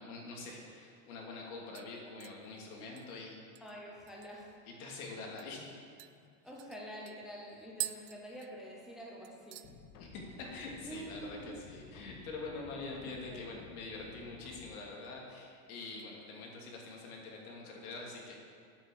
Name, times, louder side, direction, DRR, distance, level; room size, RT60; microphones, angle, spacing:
voice 1, 0.0-3.4 4.7-5.7 10.0-18.3, left 3 dB, 85° left, -1 dB, 3.0 m, -45 dB
sound 1, 1.2-1.4 1.7-4.6 4.9-5.0 5.4-5.5 6.0-9.0 9.2-9.7 10.1-10.5 10.8-10.9 13.0-13.6 13.9-14.6 15.0-15.3 15.9-16.8 17.1-17.2, right 16 dB, 70° right, 0.6 m, -48 dB
voice 2, 3.6-4.6 6.4-9.7 10.8-11.6 13.0-13.4, equal, ahead, -3 dB, 0.6 m, -47 dB
sound 2, 9.6-14.7, left 5 dB, 40° left, 0.9 m, -54 dB
8.9 x 8.1 x 7.5 m, 2.3 s
supercardioid pair, 180°, 43 cm